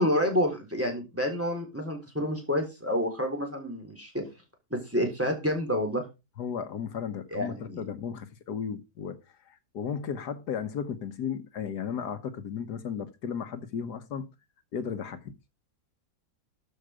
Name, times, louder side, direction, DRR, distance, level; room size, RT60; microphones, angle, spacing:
voice 1, 0.0-4.2 4.7-6.1 7.3-7.8, equal, 10° right, 3.4 m, -29 dB
voice 2, 6.4-9.2 9.4-14.3 14.7-15.3, left 7 dB, 75° left, 1.6 m, -35 dB
13.5 x 6.5 x 5.0 m
omnidirectional pair, 1.8 m